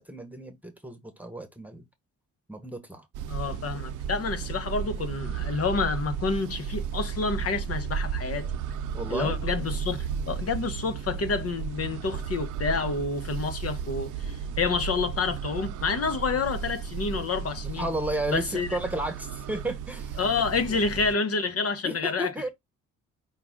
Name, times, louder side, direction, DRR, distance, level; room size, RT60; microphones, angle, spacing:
voice 1, 0.0-1.8 2.5-3.1 8.9-9.4 17.6-20.2 20.7-20.8 21.8-22.5, right 1 dB, 5° right, 1.2 m, -33 dB
sound 1, 3.1-21.2, right 7 dB, 80° right, 0.7 m, -34 dB
voice 2, 3.3-8.5 9.1-17.9 18.3-18.7 20.2-22.5, left 4 dB, 50° left, 1.1 m, -29 dB
5.8 x 2.5 x 3.7 m
cardioid pair, 90°, 30 cm